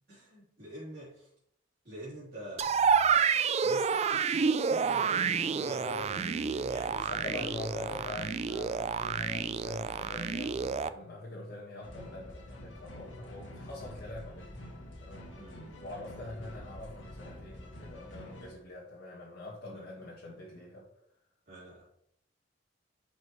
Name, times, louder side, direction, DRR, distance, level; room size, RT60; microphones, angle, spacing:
voice 1, 0.1-1.3 1.8-3.1 3.6-7.9 15.4-15.8 19.6-20.1 21.5-21.8, equal, 50° right, -9 dB, 3.5 m, -45 dB
sound 1, 2.6-10.9, right 6 dB, 35° right, 0.3 m, -29 dB
voice 2, 7.1-14.6 15.0-15.3 15.8-20.9, left 2 dB, 55° left, -6 dB, 1.7 m, -44 dB
sound 2, 11.8-18.5, equal, 85° left, 2.0 m, -47 dB
11.0 x 5.2 x 3.2 m, 0.71 s
head